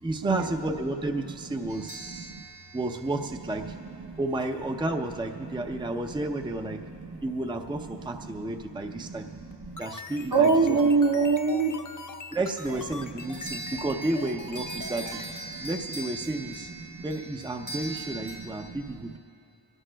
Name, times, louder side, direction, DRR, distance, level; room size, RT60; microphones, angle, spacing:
voice 1, 0.0-2.3 2.7-3.8 4.2-6.8 7.2-9.3 9.8-10.8 12.3-15.2 15.6-16.7 17.0-19.2, right 2 dB, 10° right, 5 dB, 0.5 m, -32 dB
sound 1, 1.7-3.9 13.2-18.4, right 2 dB, 85° right, 3.3 m, -41 dB
voice 2, 2.1-2.4 3.7-3.8 4.0-4.2 5.7-5.8 6.7-7.2 8.3-8.5 8.9-9.8 10.3-11.8 13.4-13.6 15.5-15.7 16.8-17.1 18.7-18.8, right 4 dB, 55° right, 2 dB, 0.9 m, -26 dB
sound 2, 9.5-15.3, left 4 dB, 45° left, 0.7 m, -42 dB
23.5 x 17.5 x 2.3 m, 2.7 s
wide cardioid pair, 85°, 43 cm